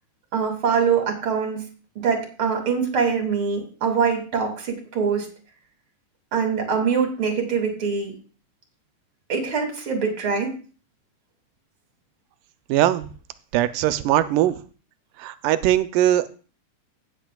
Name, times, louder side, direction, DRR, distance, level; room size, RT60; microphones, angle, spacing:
voice 1, 0.3-1.7 2.0-5.3 6.3-8.1 9.3-10.5, right 6 dB, 45° right, 3 dB, 2.8 m, -23 dB
voice 2, 12.7-13.1 13.5-14.6 15.2-16.3, right 13 dB, 90° right, 12 dB, 2.3 m, -20 dB
16.5 x 8.2 x 2.3 m, 0.38 s
omnidirectional pair, 3.7 m